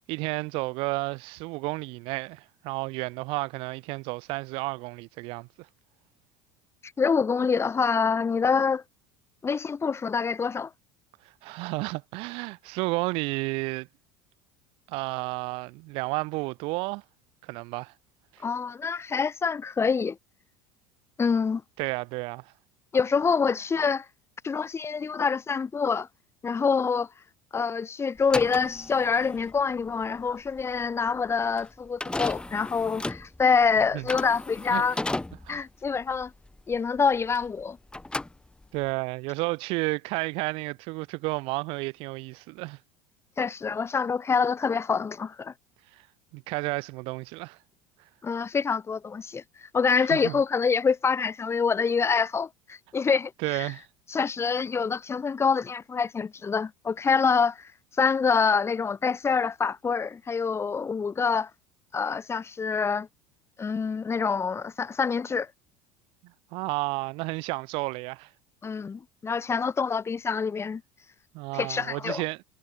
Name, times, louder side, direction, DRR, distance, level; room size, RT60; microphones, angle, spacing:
voice 1, 0.1-5.7 11.4-13.9 14.9-17.0 17.4-17.9 18.3-18.4 21.8-22.5 33.9-34.1 34.7-34.8 35.4-35.6 38.7-42.8 46.3-47.6 50.1-50.4 53.4-53.9 66.5-68.3 71.3-72.4, right 25 dB, 60° right, 7.7 m, -32 dB
voice 2, 7.0-8.8 9.4-10.7 18.4-20.2 21.2-21.6 22.9-24.1 24.4-26.1 26.4-27.1 27.5-35.0 35.5-36.3 36.7-37.8 43.4-45.5 48.2-53.7 54.1-57.7 58.0-61.5 61.9-63.1 63.6-65.5 68.6-70.8 71.5-72.2, left 5 dB, 25° left, 2.3 m, -26 dB
sound 1, 28.2-37.6 37.9-38.9, left 2 dB, 10° left, 2.4 m, -35 dB
hypercardioid pair, 70°, 10 cm